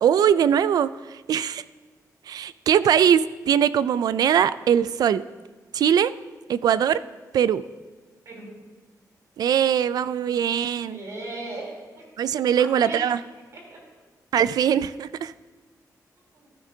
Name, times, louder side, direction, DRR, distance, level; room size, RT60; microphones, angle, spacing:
voice 1, 0.0-1.6 2.3-5.2 5.7-6.1 6.5-7.0 7.3-7.6 9.4-11.0 12.2-13.2 14.3-15.3, right 9 dB, 70° right, 16 dB, 0.4 m, -21 dB
voice 2, 10.9-12.0 12.6-13.0 13.7-13.8 16.3-16.5, right 2 dB, 55° right, -2 dB, 3.5 m, -37 dB
14.5 x 12.5 x 2.8 m, 1.3 s
wide cardioid pair, 145°, 7 cm